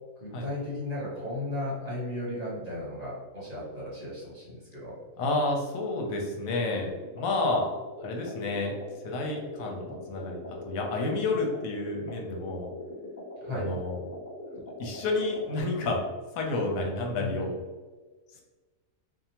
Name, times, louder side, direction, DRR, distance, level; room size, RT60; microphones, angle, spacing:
voice 1, 0.2-4.9 13.4-13.7 17.2-17.4, left 2 dB, 35° right, -8 dB, 0.7 m, -35 dB
voice 2, 5.2-6.9 7.1-7.7 8.0-8.7 9.0-12.7 13.5-14.0 14.8-16.0 16.3-17.6, left 2 dB, 90° left, 0 dB, 1.0 m, -30 dB
sound 1, 6.9-15.6, left 1 dB, 15° left, 0.7 m, -42 dB
2.8 x 2.0 x 2.8 m, 1.3 s
omnidirectional pair, 1.4 m